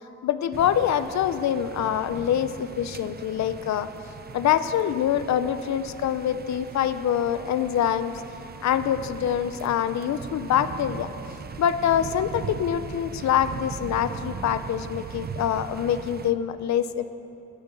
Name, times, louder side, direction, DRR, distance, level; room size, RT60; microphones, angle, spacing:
voice 1, 0.2-3.9 4.3-8.1 8.6-11.1 11.6-17.1, left 10 dB, 65° left, 12 dB, 0.7 m, -25 dB
sound 1, 0.5-16.3, right 6 dB, 30° right, 0.6 m, -39 dB
16.0 x 8.9 x 7.0 m, 2.9 s
cardioid pair, 90°, 30 cm